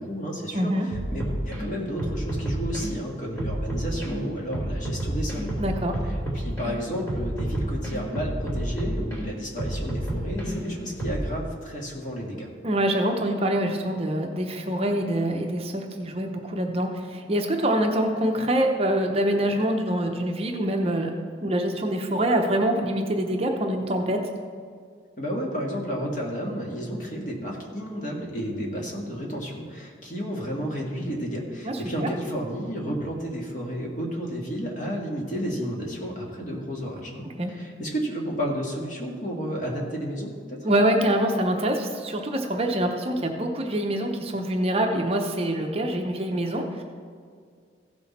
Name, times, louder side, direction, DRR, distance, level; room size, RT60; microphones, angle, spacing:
voice 1, 0.0-12.5 25.2-40.7, equal, 40° left, -1 dB, 1.8 m, -32 dB
voice 2, 0.5-0.8 5.6-6.0 12.6-21.1 21.4-24.2 31.6-32.1 37.4-37.5 40.6-46.8, right 1 dB, 30° right, 3 dB, 0.7 m, -25 dB
sound 1, 0.9-1.6 2.0-2.9 3.4-4.1 4.5-6.7 7.1-9.2 9.6-11.3, right 1 dB, 15° left, 2.9 m, -29 dB
15.5 x 6.2 x 4.2 m, 2.1 s
head